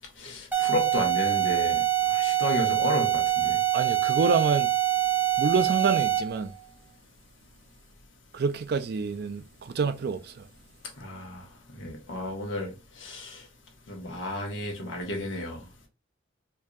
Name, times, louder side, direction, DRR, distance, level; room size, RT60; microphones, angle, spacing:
voice 1, 0.2-3.6 11.0-11.4 11.8-13.4 13.9-15.6, left 1 dB, 85° left, 1.3 m, -32 dB
sound 1, 0.5-6.4, right 14 dB, 10° right, 0.8 m, -25 dB
voice 2, 3.7-4.7 5.4-6.5 8.3-10.5, right 5 dB, 55° right, 0.4 m, -27 dB
4.6 x 2.7 x 2.4 m
head